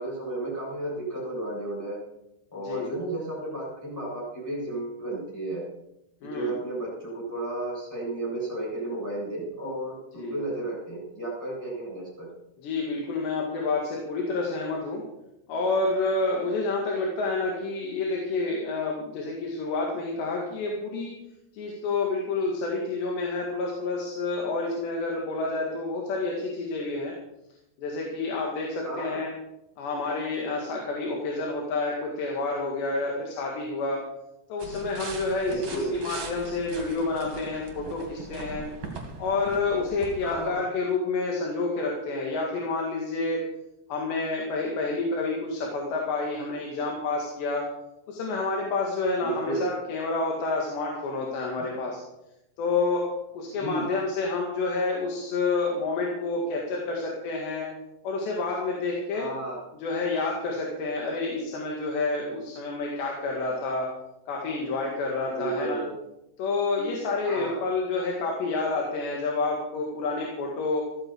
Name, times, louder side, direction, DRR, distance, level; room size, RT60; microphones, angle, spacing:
voice 1, 0.0-2.0 2.5-5.6 6.2-12.3 28.8-29.2 35.5-36.0 40.2-40.6 49.2-49.7 51.6-51.8 53.5-53.9 59.1-59.6 65.3-66.0 67.2-67.7, right 2 dB, 5° left, -6 dB, 7.5 m, -33 dB
voice 2, 6.2-6.5 10.1-10.3 12.6-15.0 15.5-21.1 21.5-27.1 27.8-29.3 29.8-34.0 34.5-38.7 39.2-43.4 43.9-47.7 48.1-52.0 52.6-53.1 53.3-57.7 58.0-59.3 59.8-63.9 64.3-65.8 66.4-70.8, left 3 dB, 80° left, -1 dB, 4.3 m, -29 dB
sound 1, 34.6-40.5, right 3 dB, 40° right, 2.9 m, -40 dB
16.0 x 14.0 x 4.7 m, 0.88 s
omnidirectional pair, 4.8 m